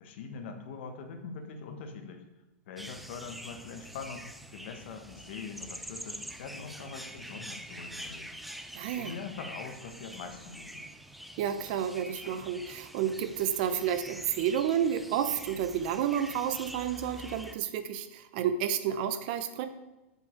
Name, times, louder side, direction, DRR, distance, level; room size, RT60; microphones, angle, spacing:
voice 1, 0.0-2.2 2.7-8.3 8.9-10.9 12.2-12.4, left 5 dB, 60° left, 6 dB, 1.3 m, -43 dB
sound 1, 2.8-17.6, equal, ahead, 0.3 m, -45 dB
voice 2, 8.7-9.1 11.4-19.7, right 9 dB, 45° right, 10 dB, 0.7 m, -30 dB
7.3 x 6.9 x 4.6 m, 1.0 s
supercardioid pair, 155°, 7 cm